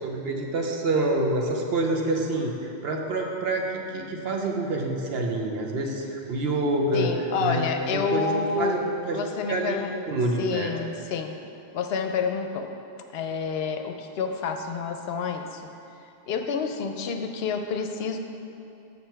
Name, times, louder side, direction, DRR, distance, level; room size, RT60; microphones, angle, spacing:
voice 1, 0.0-7.1 7.4-7.7 7.9-8.3 8.6-10.7, right 2 dB, 70° right, 1 dB, 1.0 m, -27 dB
voice 2, 6.9-8.8 9.1-9.9 10.4-11.4 11.7-12.8 13.1-15.6 16.3-18.2, left 5 dB, 70° left, 6 dB, 0.8 m, -29 dB
7.5 x 5.7 x 4.5 m, 2.8 s
omnidirectional pair, 1.1 m